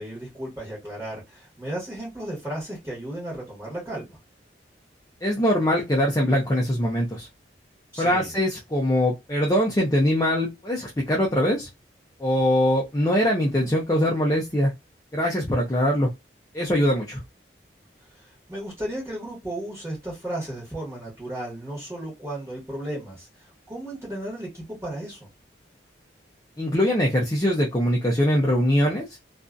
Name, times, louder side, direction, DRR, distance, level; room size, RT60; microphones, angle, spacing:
voice 1, 0.0-4.2 7.9-8.3 18.1-25.3, right 1 dB, 15° right, -4 dB, 1.3 m, -34 dB
voice 2, 5.2-7.3 8.0-11.7 12.2-14.7 15.1-16.1 16.5-17.2 26.6-29.1, equal, 20° left, -3 dB, 0.6 m, -22 dB
2.6 x 2.5 x 2.2 m, 0.21 s
head